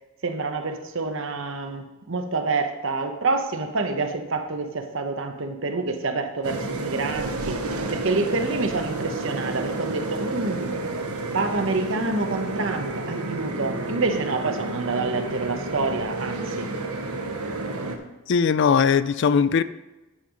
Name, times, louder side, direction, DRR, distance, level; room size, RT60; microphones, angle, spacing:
voice 1, 0.2-7.6 7.9-10.8 11.3-16.7, right 3 dB, 60° right, 6 dB, 0.9 m, -27 dB
sound 1, 6.4-18.0, right 2 dB, 90° right, 1.1 m, -30 dB
voice 2, 18.3-19.6, left 6 dB, 55° left, 15 dB, 0.3 m, -19 dB
9.8 x 5.5 x 5.1 m, 1.1 s
head